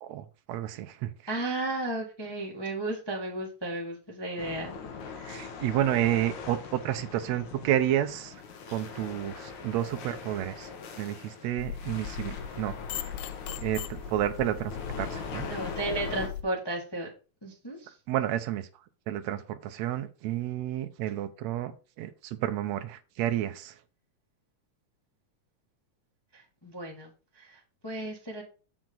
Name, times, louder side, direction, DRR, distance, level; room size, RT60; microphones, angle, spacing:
voice 1, 0.0-1.3 5.2-8.4 8.7-10.7 11.0-12.8 13.6-14.7 15.0-15.5 18.1-18.7 19.1-21.7 22.0-23.8, right 12 dB, 75° right, 1.7 m, -30 dB
voice 2, 1.3-4.8 13.5-13.6 15.4-17.1 17.4-17.9 26.3-28.4, right 2 dB, 40° left, 0.3 m, -34 dB
sound 1, 4.4-16.3, left 5 dB, 70° left, 2.4 m, -41 dB
sound 2, 11.6-16.4, left 9 dB, 85° left, 2.2 m, -39 dB
7.4 x 6.1 x 3.9 m
omnidirectional pair, 3.8 m